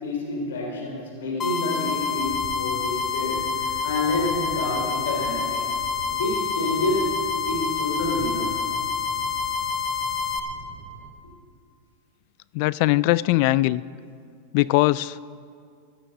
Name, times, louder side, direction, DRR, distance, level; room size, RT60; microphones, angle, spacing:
voice 1, 0.0-5.6 6.1-7.1 7.5-8.6, left 2 dB, 80° left, -1 dB, 3.2 m, -28 dB
sound 1, 1.4-10.4, left 6 dB, 30° left, 1.4 m, -27 dB
sound 2, 1.8-11.1, right 3 dB, 45° right, 2.7 m, -43 dB
voice 2, 12.5-13.8 14.5-15.2, left 18 dB, 55° left, 19 dB, 0.3 m, -20 dB
15.0 x 9.8 x 6.5 m, 2.2 s
hypercardioid pair, 115°, 0 cm